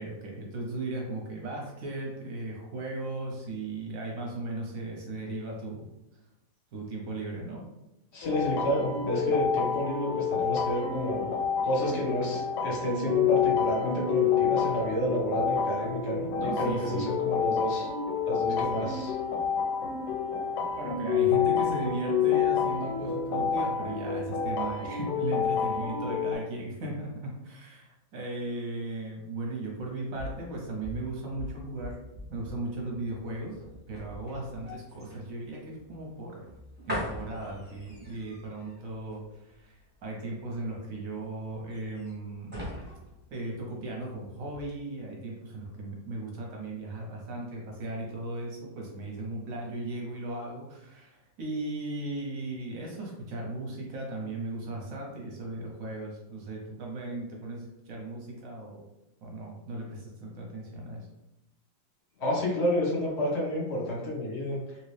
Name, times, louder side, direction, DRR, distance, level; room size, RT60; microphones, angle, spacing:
voice 1, 0.0-5.8 6.7-7.6 16.3-17.1 18.5-18.9 20.8-32.0 32.3-33.6 33.9-36.5 36.9-42.7 43.3-58.8 59.2-61.1, right 2 dB, 60° right, -1 dB, 0.9 m, -37 dB
voice 2, 8.1-11.3 11.6-17.9 18.3-19.2 62.2-64.6, equal, 45° left, -3 dB, 1.0 m, -30 dB
sound 1, 8.2-26.4, left 7 dB, 85° left, 1.3 m, -28 dB
sound 2, 30.0-44.1 44.5-44.7, left 1 dB, 10° right, 0.7 m, -43 dB
3.0 x 2.8 x 3.2 m, 0.90 s
omnidirectional pair, 2.0 m